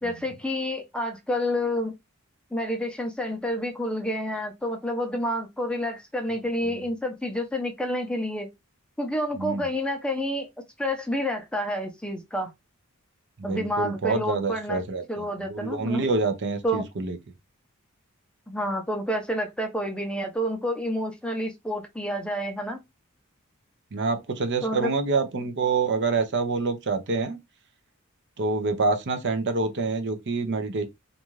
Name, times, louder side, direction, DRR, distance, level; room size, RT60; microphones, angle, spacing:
voice 1, 0.0-1.9 2.5-8.5 9.0-10.5 10.8-12.5 13.4-14.8 15.1-16.1 16.6-16.9 18.5-22.8 24.6-24.9, equal, 5° left, 0.5 m, -29 dB
voice 2, 13.4-17.2 23.9-27.4 28.4-30.8, right 3 dB, 55° right, 0.6 m, -27 dB
2.6 x 2.3 x 3.0 m
head